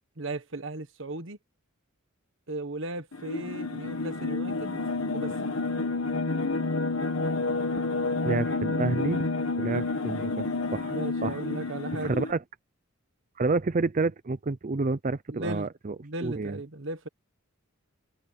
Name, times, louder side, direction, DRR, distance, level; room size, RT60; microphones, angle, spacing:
voice 1, 0.2-1.4 2.5-4.8 5.1-5.3 10.9-12.1 15.3-15.7 16.0-17.1, right 2 dB, 60° right, 1.5 m, -36 dB
sound 1, 3.1-12.3, left 3 dB, 80° left, 1.7 m, -29 dB
voice 2, 8.2-9.2 9.6-10.5 10.7-11.0 11.2-11.4 12.0-12.4 13.4-16.0 16.2-16.6, right 3 dB, 35° right, 0.5 m, -29 dB
head